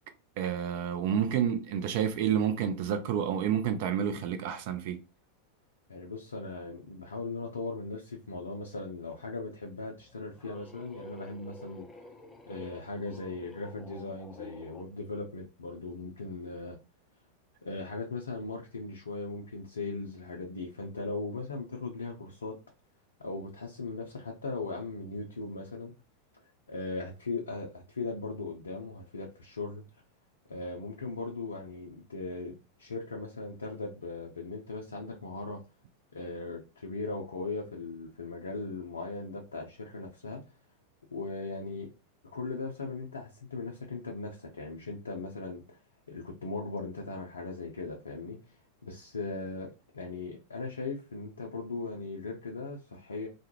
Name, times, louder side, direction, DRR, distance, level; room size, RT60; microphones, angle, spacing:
voice 1, 0.4-5.0, right 8 dB, 50° right, 0.4 m, -29 dB
voice 2, 5.9-11.9 12.5-16.8 17.6-22.6 23.2-25.9 26.7-29.8 30.5-35.6 36.1-40.4 41.1-41.9 42.3-45.8 46.1-48.6 48.8-53.3, left 3 dB, 75° left, 0.4 m, -38 dB
sound 1, 10.0-14.9, left 2 dB, 15° left, 0.4 m, -50 dB
2.3 x 2.1 x 2.9 m
figure-of-eight pair, 90°, 0 cm